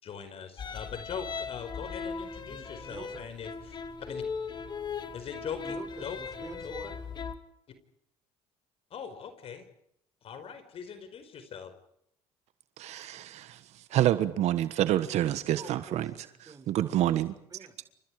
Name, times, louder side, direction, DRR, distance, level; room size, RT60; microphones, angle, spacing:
voice 1, 0.0-4.2 5.1-5.6 6.0-6.2 6.6-6.9 8.9-9.6 10.2-11.7, left 7 dB, 55° left, 9 dB, 5.0 m, -41 dB
sound 1, 0.6-7.3, left 5 dB, 40° left, 2.2 m, -38 dB
voice 2, 2.5-3.2 5.4-7.0 15.5-16.1 16.4-17.2 17.5-17.9, right 4 dB, 30° right, 6 dB, 6.4 m, -47 dB
voice 3, 12.8-13.6 13.9-16.1 16.7-17.3, right 12 dB, 65° right, 12 dB, 1.4 m, -27 dB
29.0 x 27.5 x 4.9 m, 0.74 s
supercardioid pair, 80°, 12 cm